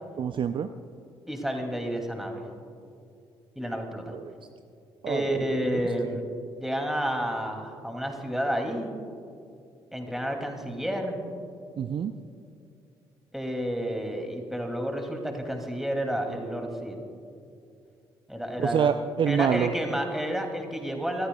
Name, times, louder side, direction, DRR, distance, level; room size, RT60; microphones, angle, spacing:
voice 1, 0.2-0.7 4.1-4.3 5.0-6.2 11.8-12.1 18.6-19.7, right 8 dB, 40° right, 10 dB, 0.5 m, -27 dB
voice 2, 1.3-2.5 3.6-4.1 5.1-6.2 6.6-8.9 9.9-11.2 13.3-17.0 18.3-18.9 19.3-21.3, equal, ahead, 3 dB, 2.6 m, -30 dB
26.0 x 14.0 x 2.3 m, 2.4 s
figure-of-eight pair, 45°, 13 cm